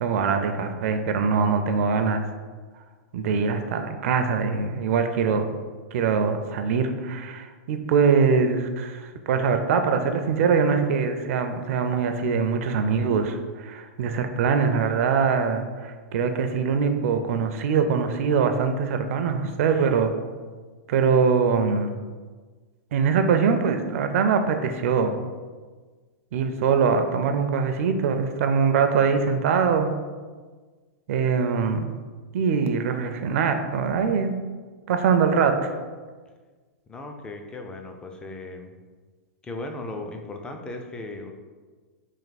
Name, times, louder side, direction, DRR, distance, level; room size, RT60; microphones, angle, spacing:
voice 1, 0.0-2.2 3.1-5.5 5.9-20.1 20.9-22.0 22.9-25.2 26.3-29.9 31.1-32.0 32.3-34.3 34.9-35.8, right 5 dB, 60° right, 7 dB, 0.4 m, -23 dB
voice 2, 36.9-38.8 39.4-41.3, left 2 dB, 10° left, 4 dB, 0.3 m, -37 dB
3.4 x 2.5 x 4.0 m, 1.4 s
hypercardioid pair, 140°, 8 cm